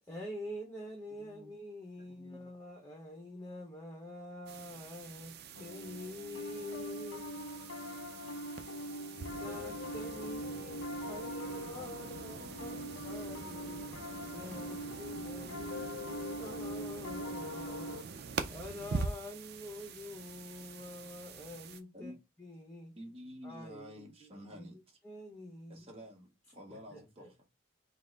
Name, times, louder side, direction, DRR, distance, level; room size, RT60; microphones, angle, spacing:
voice 1, 0.1-5.3 5.6-7.3 9.4-12.8 13.0-13.8 14.3-18.0 18.5-22.1 22.4-22.9 23.4-25.9 26.7-27.3, left 1 dB, 10° left, 0.9 m, -46 dB
voice 2, 1.2-1.5 2.0-2.5 12.0-14.1 14.4-14.9 21.9-22.2 23.0-25.0 25.7-27.4, equal, 30° right, 1.1 m, -51 dB
sound 1, 4.5-21.8, right 4 dB, 50° right, 0.5 m, -44 dB
Piano, 5.6-18.0, left 1 dB, 65° left, 0.4 m, -42 dB
5.4 x 2.0 x 3.9 m
head